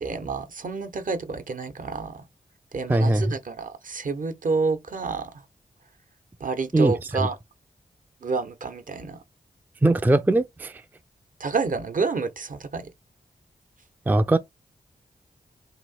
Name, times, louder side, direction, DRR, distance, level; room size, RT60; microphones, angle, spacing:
voice 1, 0.0-2.2 2.7-5.3 6.4-7.4 8.2-9.2 11.4-12.9, right 4 dB, 60° right, 0.8 m, -29 dB
voice 2, 2.9-3.4 6.7-7.3 9.8-10.8 14.1-14.4, right 2 dB, 10° right, 0.3 m, -21 dB
3.0 x 2.7 x 4.1 m
cardioid pair, 55°, 16 cm